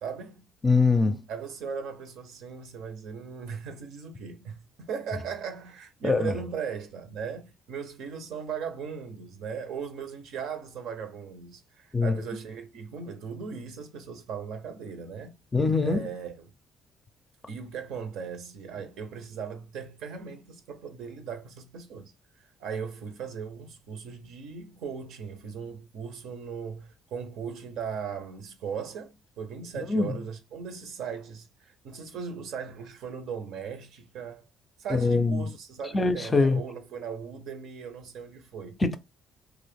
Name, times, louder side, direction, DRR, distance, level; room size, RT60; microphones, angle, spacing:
voice 1, 0.0-0.4 1.3-15.3 15.8-16.5 17.5-22.1 22.6-34.4 34.8-38.8, right 6 dB, 80° right, 0.8 m, -38 dB
voice 2, 0.6-1.2 6.0-6.3 11.9-12.2 15.5-16.0 29.9-30.1 34.9-35.4 35.9-36.6 38.8-39.0, left 3 dB, 25° left, 0.5 m, -23 dB
3.0 x 2.5 x 3.3 m
cardioid pair, 105°, 0 cm